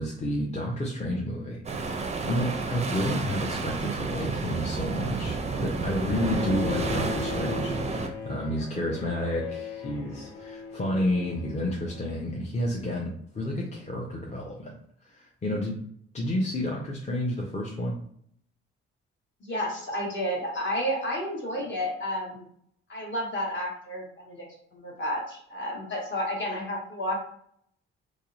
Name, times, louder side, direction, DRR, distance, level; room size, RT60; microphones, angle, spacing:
voice 1, 0.0-14.8 15.0-15.8 16.1-18.0, left 1 dB, 25° left, -2 dB, 0.6 m, -30 dB
sound 1, 1.6-8.1, right 4 dB, 25° right, 0.4 m, -31 dB
Bowed string instrument, 6.1-12.1, left 5 dB, 85° left, 0.6 m, -38 dB
voice 2, 19.4-22.5 22.9-24.5 24.7-27.2, equal, 40° left, -1 dB, 1.2 m, -31 dB
2.7 x 2.0 x 2.5 m, 0.66 s
hypercardioid pair, 45°, 29 cm